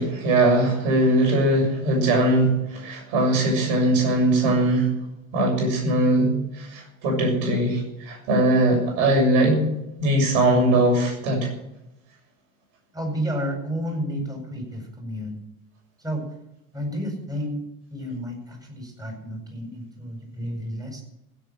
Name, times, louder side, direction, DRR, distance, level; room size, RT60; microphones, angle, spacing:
voice 1, 0.0-4.9 5.3-9.7 10.0-11.5, right 1 dB, 65° right, 1 dB, 7.0 m, -21 dB
voice 2, 12.9-15.4 16.0-16.2 16.7-17.6 17.9-21.0, equal, 10° right, 1 dB, 7.9 m, -31 dB
16.0 x 8.5 x 9.2 m, 0.84 s
hypercardioid pair, 90°, 41 cm